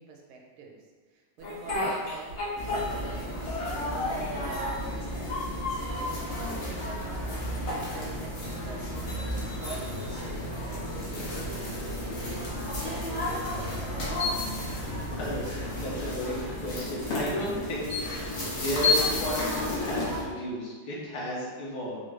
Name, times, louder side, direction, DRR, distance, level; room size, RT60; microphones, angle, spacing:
voice 1, 0.0-2.4 2.9-10.5 10.9-14.0, right 4 dB, 85° right, 0 dB, 1.4 m, -47 dB
Speech, 1.4-3.2 3.5-4.9 5.2-6.2 6.8-7.5, left 2 dB, 45° left, 1.0 m, -33 dB
sound 1, 2.6-20.2, left 1 dB, 85° left, 0.6 m, -32 dB
voice 2, 14.7-22.0, left 1 dB, 65° left, -5 dB, 1.1 m, -34 dB
3.4 x 2.4 x 3.1 m, 1.4 s
omnidirectional pair, 2.2 m